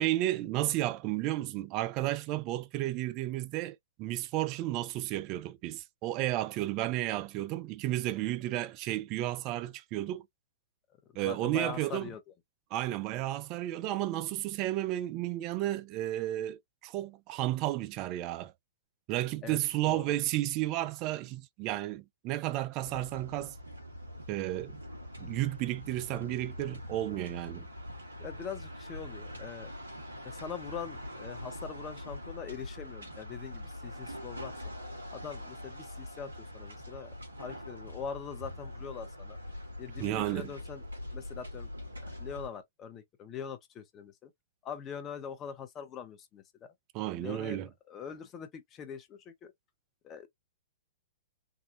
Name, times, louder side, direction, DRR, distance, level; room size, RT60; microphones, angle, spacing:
voice 1, 0.0-10.2 11.2-12.1 12.7-18.5 19.1-23.5 24.3-24.8 25.2-27.7 40.0-40.5 46.9-47.7, right 15 dB, 35° right, 0.4 m, -32 dB
voice 2, 11.1-12.2 19.4-19.6 19.8-20.1 28.2-29.7 30.2-34.5 35.1-39.4 39.8-40.8 41.1-41.7 42.2-44.3 44.6-46.7 47.1-49.5 50.0-50.3, left 7 dB, 25° left, 0.9 m, -43 dB
sound 1, 22.8-42.5, left 1 dB, 75° right, 1.6 m, -43 dB
3.7 x 2.3 x 2.7 m
figure-of-eight pair, 105°, 0 cm